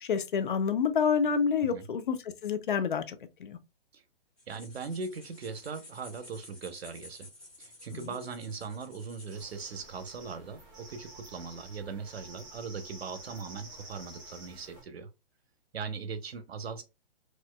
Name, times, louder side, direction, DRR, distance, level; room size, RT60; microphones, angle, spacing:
voice 1, 0.0-3.6 7.9-8.0, left 6 dB, 55° left, 0.6 m, -28 dB
sound 1, 4.4-9.6, left 2 dB, 5° left, 0.7 m, -53 dB
voice 2, 4.5-7.3 7.6-15.1 15.7-16.8, right 5 dB, 90° right, 0.8 m, -40 dB
sound 2, 9.3-14.8, right 2 dB, 20° right, 1.0 m, -50 dB
4.3 x 2.5 x 2.2 m
hypercardioid pair, 165°, 30 cm